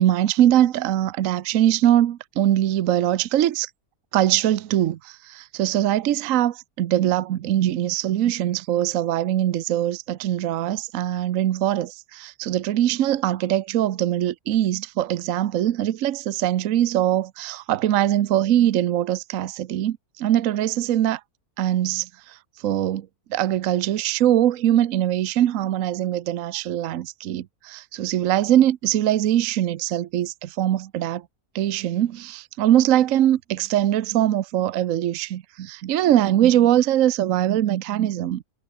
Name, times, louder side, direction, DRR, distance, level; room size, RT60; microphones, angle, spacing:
voice 1, 0.0-3.7 4.1-21.2 21.6-22.4 22.6-31.2 31.5-38.4, right 12 dB, 65° right, 1.1 m, -22 dB
omnidirectional pair, 1.6 m